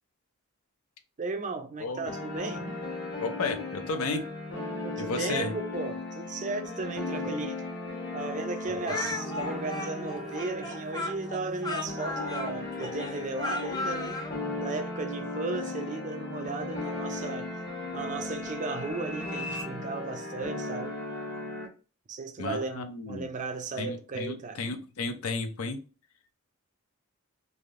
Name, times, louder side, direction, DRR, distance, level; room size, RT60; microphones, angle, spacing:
voice 1, 1.2-2.7 4.8-7.6 8.1-14.3 14.6-17.5 17.9-21.0 22.1-24.6, right 3 dB, 35° right, 0.5 m, -35 dB
sound 1, 2.1-21.7, left 2 dB, 50° left, 1.1 m, -37 dB
voice 2, 3.2-4.2 5.0-5.5 8.9-9.1 22.4-23.3 23.8-25.8, left 3 dB, 70° left, 0.5 m, -33 dB
Speech, 8.9-14.3, left 2 dB, 20° left, 0.5 m, -35 dB
sound 2, 15.8-19.6, left 2 dB, 80° right, 0.9 m, -45 dB
3.3 x 2.6 x 2.4 m
head